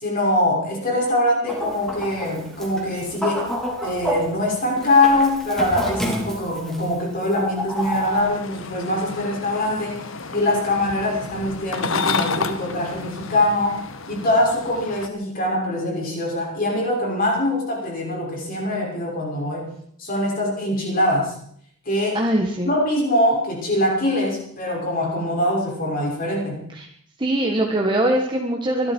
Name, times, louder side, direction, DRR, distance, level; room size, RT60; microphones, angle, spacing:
voice 1, 0.0-3.5 3.8-10.0 10.3-13.8 14.1-19.7 20.0-21.3 21.9-22.2 22.6-26.6, left 1 dB, 40° left, -1 dB, 6.2 m, -23 dB
Chicken rooster, 1.5-8.2, equal, ahead, 3.7 m, -29 dB
sound 1, 7.7-15.1, left 4 dB, 65° left, 1.4 m, -31 dB
voice 2, 22.1-22.7 26.7-26.9 27.2-28.9, right 1 dB, 20° right, 1 dB, 1.6 m, -22 dB
24.5 x 12.5 x 4.7 m, 0.66 s
head